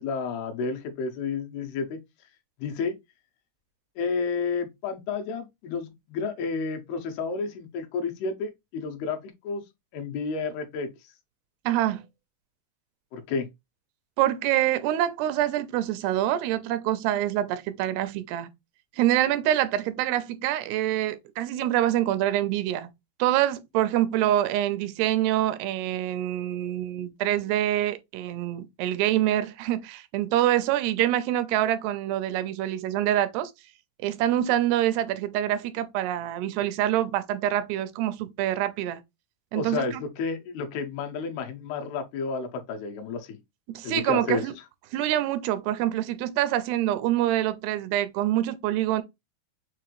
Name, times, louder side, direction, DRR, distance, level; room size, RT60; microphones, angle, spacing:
voice 1, 0.0-2.0 2.6-3.0 4.0-9.6 9.9-10.9 13.1-13.5 39.5-43.4 43.8-44.4, left 4 dB, 80° left, 2.8 m, -31 dB
voice 2, 11.7-12.0 14.2-18.5 19.0-22.9 23.2-33.5 34.0-39.0 39.5-40.0 43.7-44.5 44.9-49.0, right 13 dB, 85° right, 2.7 m, -25 dB
6.7 x 2.5 x 3.0 m
omnidirectional pair, 4.6 m